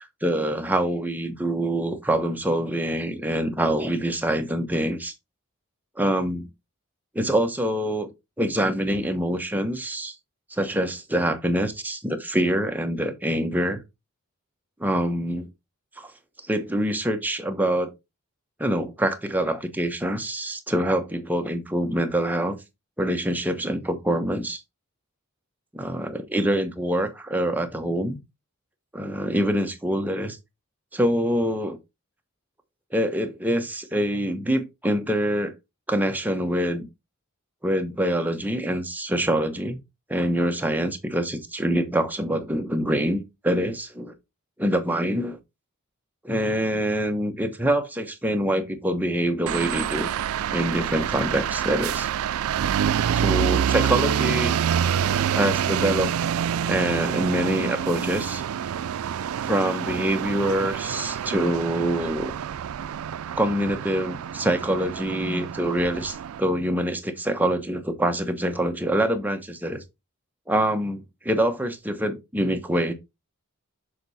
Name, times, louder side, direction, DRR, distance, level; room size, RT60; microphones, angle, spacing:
voice 1, 0.2-5.1 6.0-6.5 7.1-8.1 8.4-10.1 10.5-13.8 14.8-15.5 16.0-16.1 16.5-17.9 18.6-22.6 23.0-24.6 25.7-28.2 28.9-30.4 30.9-31.8 32.9-35.5 35.9-36.9 37.6-39.8 40.1-44.1 44.6-45.4 46.2-50.1 50.5-52.1 53.1-54.6 55.3-56.1 56.6-58.4 59.4-62.3 63.4-69.8 70.5-72.9, right 1 dB, 10° right, 1.0 m, -25 dB
sound 1, 49.5-66.4, right 8 dB, 75° right, 0.4 m, -27 dB
6.7 x 4.0 x 4.0 m
head